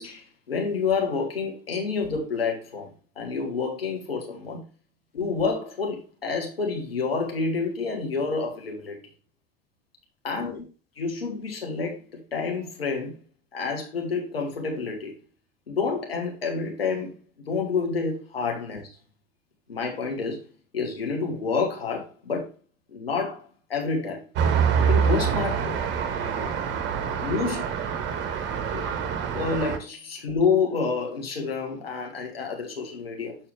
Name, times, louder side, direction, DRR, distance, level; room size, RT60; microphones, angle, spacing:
voice 1, 0.0-2.9 3.2-4.6 5.1-9.0 10.2-10.6 11.0-12.1 12.3-13.2 13.5-15.1 15.7-17.2 17.5-18.9 19.7-20.5 20.7-22.5 22.9-24.2 24.8-25.8 27.2-27.7 28.7-28.9 29.3-33.4, left 4 dB, 75° left, 1.9 m, -28 dB
Traffic noise roadway noise, 24.4-29.8, right 7 dB, 40° right, 1.2 m, -25 dB
6.8 x 5.6 x 3.4 m
figure-of-eight pair, 75°, 29 cm